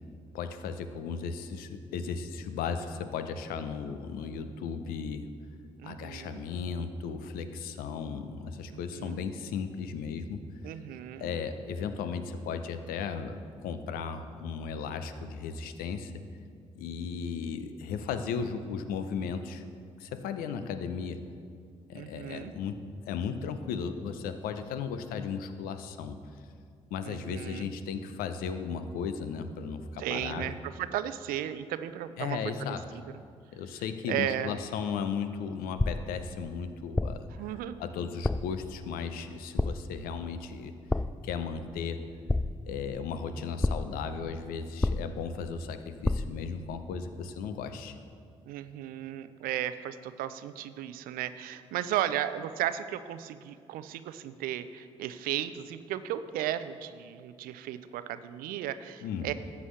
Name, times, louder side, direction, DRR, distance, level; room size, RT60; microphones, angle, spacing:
voice 1, 0.3-5.3 5.8-10.4 11.2-16.2 16.7-19.6 20.0-21.2 21.9-26.2 26.9-30.5 32.2-32.8 33.5-37.3 37.8-40.7 41.2-42.0 42.7-48.0 59.0-59.3, left 6 dB, 70° left, 9 dB, 0.6 m, -35 dB
voice 2, 5.8-6.4 8.7-9.2 10.6-11.4 21.9-22.5 27.0-27.7 30.0-32.4 34.1-34.5 37.4-37.8 48.5-59.3, right 11 dB, 65° right, 13 dB, 0.5 m, -35 dB
sound 1, 35.8-36.2 37.0-37.4 38.2-38.6 39.6-40.0 40.9-41.3 42.3-42.8 43.6-44.1 44.8-45.3 46.0-46.5, left 2 dB, 10° left, 0.3 m, -29 dB
13.5 x 8.3 x 3.2 m, 2.2 s
hypercardioid pair, 40°, 16 cm